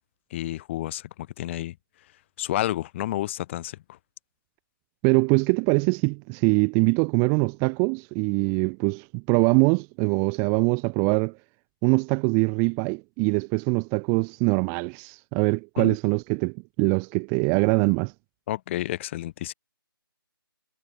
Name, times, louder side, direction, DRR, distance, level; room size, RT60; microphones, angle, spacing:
voice 1, 0.3-1.1 1.4-1.8 2.4-4.0 15.8-16.0 18.5-19.5, left 14 dB, 30° left, 5.7 m, -30 dB
voice 2, 5.0-11.4 11.8-18.1, right 40 dB or more, 20° right, 1.0 m, -23 dB
figure-of-eight pair, 150°, 12 cm